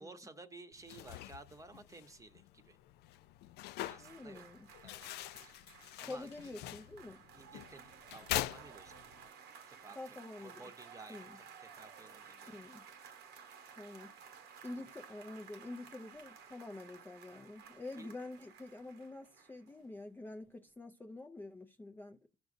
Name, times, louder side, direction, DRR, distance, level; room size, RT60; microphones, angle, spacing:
voice 1, 0.0-2.8 3.9-4.4 4.8-5.0 5.4-5.7 6.0-6.5 7.3-9.0 9.7-12.7 18.0-18.1, right 3 dB, 20° right, 0.9 m, -55 dB
sound 1, 0.7-9.3, left 14 dB, 75° left, 0.4 m, -44 dB
sound 2, 3.8-20.1 20.3-20.5, right 7 dB, 75° right, 1.0 m, -56 dB
voice 2, 4.0-4.7 6.0-7.2 9.9-10.7 11.1-11.4 12.5-12.8 13.8-22.3, left 2 dB, 10° left, 0.5 m, -47 dB
16.5 x 6.1 x 2.6 m
cardioid pair, 110°, 17 cm